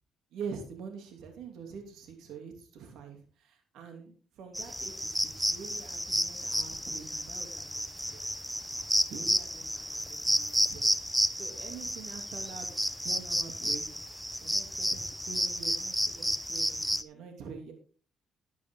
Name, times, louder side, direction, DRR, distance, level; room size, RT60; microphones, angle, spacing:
voice 1, 0.3-8.2 9.1-10.9 11.4-12.7 13.0-13.8 14.4-17.7, right 6 dB, 85° right, 4 dB, 2.8 m, -45 dB
sound 1, 4.5-17.0, equal, ahead, 1.0 m, -31 dB
12.0 x 10.5 x 3.8 m, 0.40 s
cardioid pair, 90°, 0 cm